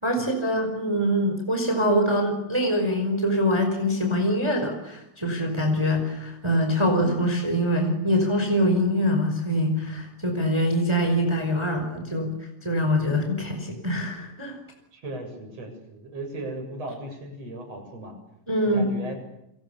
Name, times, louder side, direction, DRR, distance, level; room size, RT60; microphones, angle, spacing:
voice 1, 0.0-14.6 18.5-18.9, equal, 5° right, 4 dB, 4.8 m, -24 dB
voice 2, 14.9-18.1 18.7-19.2, right 1 dB, 45° right, 5 dB, 8.6 m, -37 dB
29.0 x 26.5 x 7.1 m, 0.83 s
omnidirectional pair, 4.0 m